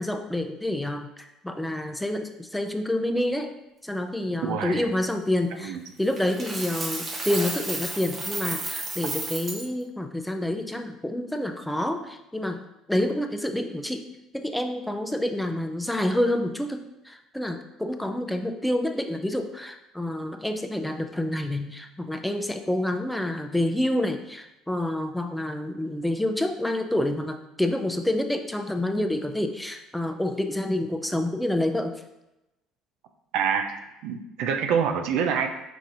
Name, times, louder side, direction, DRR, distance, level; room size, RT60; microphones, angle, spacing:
voice 1, 0.0-3.6 3.8-12.6 12.9-14.1 14.3-32.0, left 1 dB, 5° left, 6 dB, 0.4 m, -28 dB
voice 2, 4.4-4.9 5.6-5.8 33.3-35.5, right 7 dB, 75° right, 6 dB, 0.4 m, -26 dB
Coin (dropping), 6.2-9.7, right 2 dB, 30° right, 0.9 m, -32 dB
4.8 x 2.7 x 3.8 m, 0.94 s
supercardioid pair, 80°, 0 cm